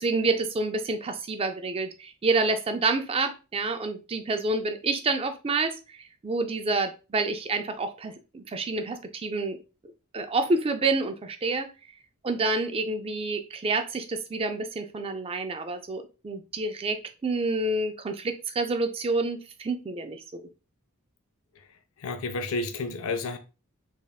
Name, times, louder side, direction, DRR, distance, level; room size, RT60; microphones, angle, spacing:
voice 1, 0.0-6.0 6.2-9.6 10.1-11.7 12.2-20.2, right 3 dB, 25° right, 0.4 m, -28 dB
voice 2, 22.0-23.4, left 3 dB, 65° left, 0.5 m, -30 dB
3.5 x 3.4 x 2.3 m
head